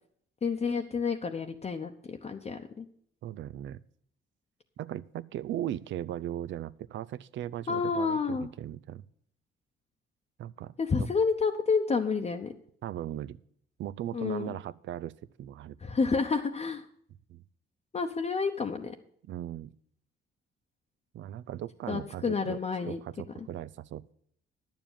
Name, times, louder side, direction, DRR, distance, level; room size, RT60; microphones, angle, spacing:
voice 1, 0.4-2.8 7.7-8.5 10.8-12.5 14.1-14.5 15.8-16.8 17.9-19.0 21.9-23.0, left 5 dB, 35° left, 3 dB, 0.9 m, -29 dB
voice 2, 3.2-3.8 4.8-9.1 10.4-10.7 11.0-11.1 12.8-13.4 13.8-15.1 15.4-15.8 17.3-17.4 19.2-19.7 21.1-22.6 22.8-24.1, right 12 dB, 70° right, 16 dB, 0.5 m, -38 dB
10.5 x 7.3 x 7.2 m, 0.64 s
cardioid pair, 90°, 20 cm